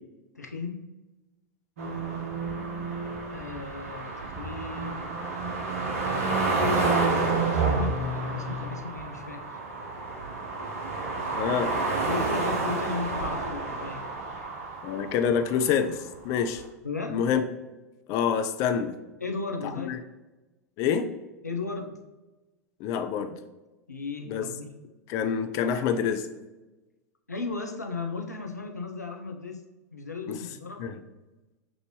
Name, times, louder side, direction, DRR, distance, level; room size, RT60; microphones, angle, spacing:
voice 1, 0.3-0.8 3.3-5.2 6.9-9.4 12.1-14.0 16.8-17.2 19.2-20.0 21.4-22.0 23.9-24.7 27.3-29.6 29.9-30.9, left 4 dB, 85° left, 3 dB, 0.6 m, -35 dB
sound 1, 1.8-15.8 16.6-16.7, right 3 dB, 60° right, 0.9 m, -29 dB
voice 2, 11.3-11.7 14.8-16.6 17.1-17.5 18.1-18.9 19.8-20.0 20.8-21.1 22.8-23.4 24.3-24.4 25.1-26.3 30.3-30.4 30.8-31.0, left 7 dB, 40° left, 7 dB, 0.4 m, -26 dB
6.1 x 2.6 x 3.1 m, 1.1 s
figure-of-eight pair, 90°, 9 cm